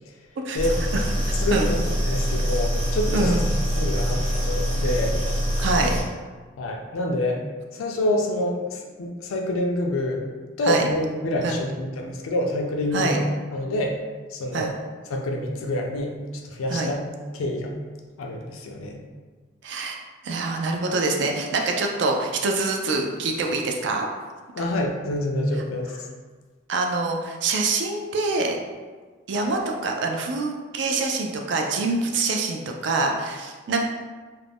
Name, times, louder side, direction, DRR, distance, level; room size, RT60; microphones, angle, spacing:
sound 1, 0.6-6.0, equal, 35° right, 0.8 m, -24 dB
voice 1, 1.4-3.4 3.8-5.2 5.8-5.9 6.6-7.4 7.7-10.2 10.6-13.2 13.5-14.0 14.3-14.7 15.1-16.1 16.4-17.0 17.3-17.7 18.2-19.0 24.6-26.0, left 1 dB, 90° left, 1 dB, 0.4 m, -27 dB
voice 2, 5.6-5.9 10.7-10.9 11.4-11.6 12.9-13.2 14.5-14.7 16.7-16.9 19.6-20.0 20.2-24.1 24.6-24.7 26.7-28.6 29.3-33.9, right 3 dB, 60° right, 2 dB, 0.3 m, -25 dB
2.4 x 2.0 x 3.4 m, 1.4 s
head